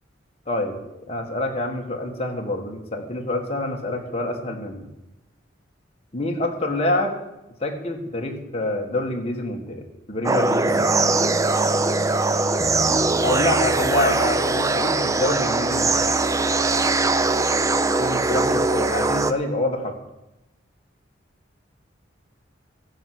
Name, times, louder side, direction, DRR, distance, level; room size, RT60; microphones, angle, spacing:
voice 1, 0.5-4.9 6.1-7.2 7.6-10.8 13.2-16.1 18.0-20.0, left 1 dB, 30° left, 1 dB, 1.7 m, -26 dB
sound 1, 10.2-19.3, right 3 dB, 15° right, 0.4 m, -21 dB
14.5 x 5.8 x 7.9 m, 0.93 s
head